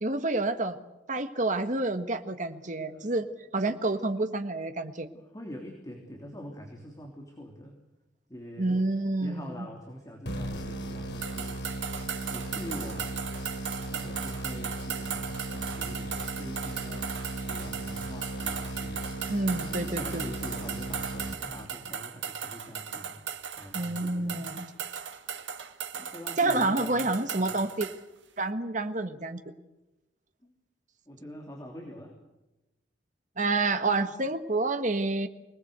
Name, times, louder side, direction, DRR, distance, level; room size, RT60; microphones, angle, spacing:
voice 1, 0.0-0.8 1.1-3.3 3.5-5.1 8.6-9.5 19.3-20.2 23.7-24.7 26.4-27.9 28.4-29.4 33.4-35.3, right 2 dB, 40° right, 8 dB, 1.5 m, -28 dB
voice 2, 2.9-3.2 3.6-4.0 5.1-7.8 8.3-8.9 9.2-13.2 13.8-19.5 19.9-24.7 25.9-27.6 30.4-30.5 31.1-32.2 34.0-34.1, equal, 20° left, 1 dB, 3.2 m, -45 dB
sound 1, 10.3-22.0, right 1 dB, 60° left, 2.9 m, -37 dB
sound 2, 11.2-28.0, right 8 dB, 70° right, 1.6 m, -37 dB
25.0 x 19.5 x 8.2 m, 0.99 s
head